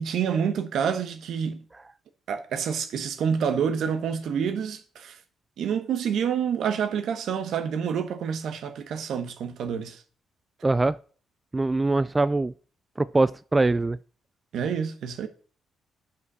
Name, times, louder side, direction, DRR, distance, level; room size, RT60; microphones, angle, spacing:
voice 1, 0.0-1.6 2.3-5.2 5.6-10.0 14.5-15.3, right 7 dB, 70° right, 1.1 m, -28 dB
voice 2, 10.6-11.0 11.5-12.5 13.0-14.0, right 2 dB, 20° right, 0.3 m, -23 dB
9.3 x 5.8 x 5.5 m
cardioid pair, 90°, 0 cm